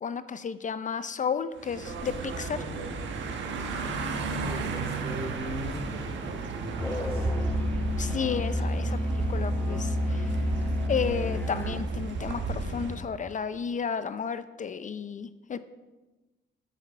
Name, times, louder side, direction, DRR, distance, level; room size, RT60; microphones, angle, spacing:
voice 1, 0.0-2.6 8.0-9.0 9.3-10.3 10.9-15.6, left 6 dB, 40° left, 13 dB, 0.5 m, -32 dB
sound 1, 1.6-13.0, right 4 dB, 70° right, 1.5 m, -34 dB
voice 2, 4.2-7.3 8.7-9.0, right 1 dB, 50° right, 0 dB, 3.5 m, -39 dB
Musical instrument, 6.8-11.9, left 1 dB, 10° left, 1.0 m, -29 dB
8.5 x 7.8 x 6.3 m, 1.2 s
cardioid pair, 90°, 20 cm